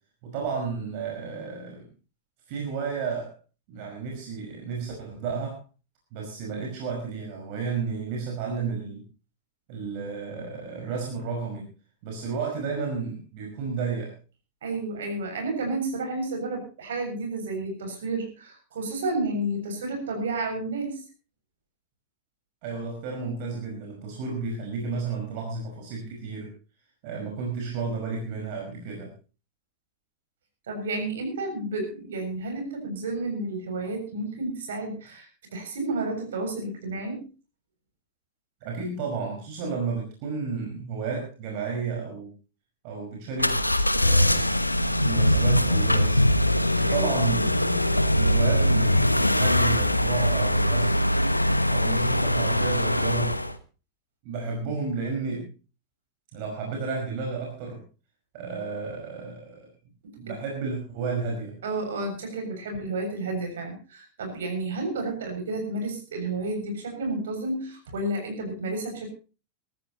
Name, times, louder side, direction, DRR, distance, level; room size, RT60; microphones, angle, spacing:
voice 1, 0.2-1.8 2.5-3.3 3.7-5.6 6.1-9.0 9.7-11.7 12.0-14.2 22.6-26.5 27.0-29.1 38.6-42.3 42.8-43.6 43.9-44.5 45.0-46.2 46.8-47.5 48.1-51.0 51.7-53.4 54.2-55.5 56.3-57.8 58.3-59.7 60.2-61.6, right 4 dB, 45° right, 0 dB, 5.4 m, -32 dB
voice 2, 14.6-21.0 30.7-37.3 46.9-47.1 47.7-47.8 60.0-60.1 61.6-69.1, right 2 dB, 65° right, 4 dB, 6.9 m, -31 dB
sound 1, 43.4-53.5, left 1 dB, 85° left, 1.1 m, -22 dB
23.5 x 13.5 x 3.0 m, 0.35 s
figure-of-eight pair, 90°, 0 cm